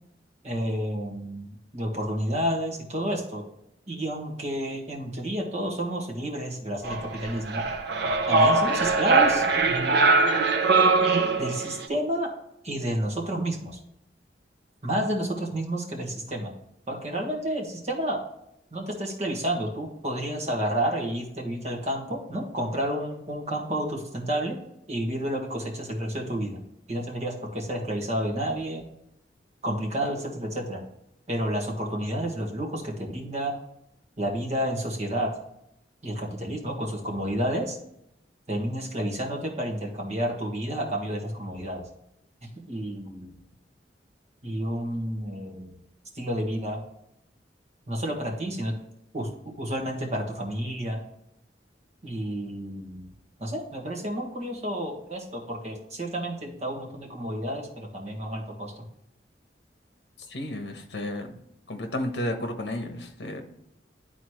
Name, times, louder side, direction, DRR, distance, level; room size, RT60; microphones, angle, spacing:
voice 1, 0.4-3.4 3.9-7.6 8.3-10.0 11.4-12.3 12.6-13.8 14.8-16.5 16.9-18.2 18.7-24.6 24.9-26.6 26.9-28.8 29.6-30.8 31.3-33.5 34.2-35.3 36.0-37.8 38.5-41.8 42.7-43.4 44.4-45.8 46.1-46.8 47.9-48.7 49.1-49.3 49.6-51.0 52.0-53.1 53.4-58.7, right 1 dB, 40° right, -1 dB, 1.5 m, -30 dB
sound 1, 6.8-11.8, right 3 dB, 65° right, 0.7 m, -22 dB
voice 2, 60.3-61.4 61.7-63.4, left 1 dB, 65° left, 5 dB, 1.1 m, -32 dB
11.0 x 4.1 x 3.1 m, 0.78 s
head